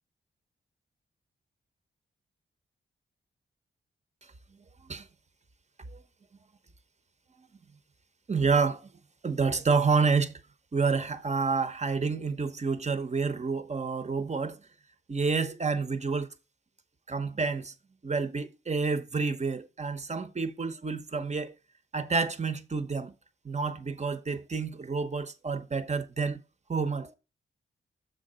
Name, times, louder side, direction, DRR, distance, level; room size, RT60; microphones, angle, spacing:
voice 1, 8.3-8.9 9.2-10.4 10.7-14.6 15.1-16.3 17.1-17.7 18.0-21.5 21.9-23.1 23.4-26.4 26.7-27.1, right 4 dB, 35° right, 0.8 m, -29 dB
7.0 x 3.9 x 5.5 m
wide cardioid pair, 100°, 21 cm